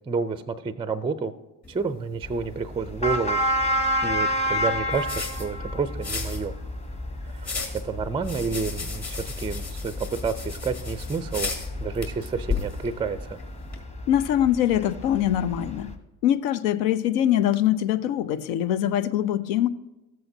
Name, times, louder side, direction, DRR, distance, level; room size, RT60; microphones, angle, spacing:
voice 1, 0.0-1.3 1.7-3.4 3.7-6.6 7.3-11.5 11.8-13.4, right 5 dB, 10° right, 13 dB, 0.4 m, -30 dB
sound 1, 1.6-13.8, left 4 dB, 35° left, 2.3 m, -36 dB
sound 2, 2.2-15.9, equal, 15° left, 1.1 m, -31 dB
voice 2, 14.1-15.9 16.2-19.7, left 11 dB, 75° left, 14 dB, 0.6 m, -23 dB
13.5 x 7.8 x 2.7 m, 1.0 s
hypercardioid pair, 55°, 48 cm